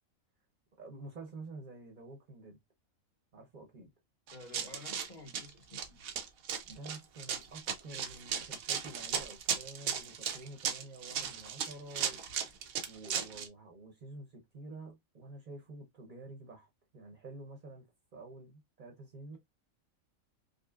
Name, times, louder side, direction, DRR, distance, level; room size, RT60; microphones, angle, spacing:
voice 1, 0.8-2.6 3.3-3.9 6.6-12.2 12.9-17.9 18.1-19.4, right 2 dB, 40° right, 0.9 m, -49 dB
voice 2, 4.3-6.1, left 2 dB, 35° left, 1.1 m, -51 dB
Run, 4.3-13.5, right 7 dB, 90° right, 1.2 m, -36 dB
5.2 x 2.2 x 2.3 m
omnidirectional pair, 1.4 m